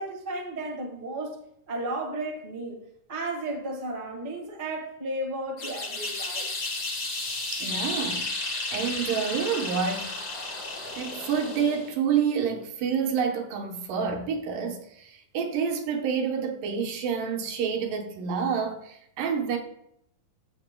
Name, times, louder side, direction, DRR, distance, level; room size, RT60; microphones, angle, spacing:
voice 1, 0.0-1.4 1.7-2.8 3.1-6.5, right 1 dB, 30° right, 0.8 m, -33 dB
sound 1, 5.6-11.9, left 2 dB, 40° left, 1.4 m, -33 dB
voice 2, 7.5-10.1 10.9-19.6, right 6 dB, 75° right, 2.6 m, -28 dB
15.5 x 6.0 x 2.2 m
omnidirectional pair, 4.1 m